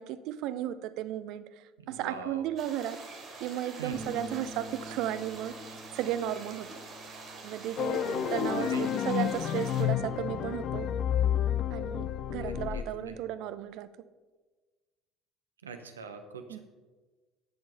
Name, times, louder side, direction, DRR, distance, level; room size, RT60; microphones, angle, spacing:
voice 1, 0.0-1.4 1.9-3.0 3.4-5.6 5.9-6.7 7.4-10.9 11.7-13.9 16.5-16.6, right 11 dB, 60° right, 13 dB, 0.6 m, -34 dB
voice 2, 1.8-2.4 3.8-4.0 8.0-9.0 12.4-13.1 15.6-16.6, right 5 dB, 85° right, 6 dB, 1.0 m, -42 dB
sound 1, 2.6-9.8, right 3 dB, 40° right, 3.2 m, -46 dB
sound 2, 3.9-10.2, right 2 dB, 20° right, 1.4 m, -48 dB
sound 3, 7.8-12.8, left 9 dB, 50° left, 0.5 m, -30 dB
10.5 x 7.0 x 5.5 m, 1.3 s
figure-of-eight pair, 60°, 0 cm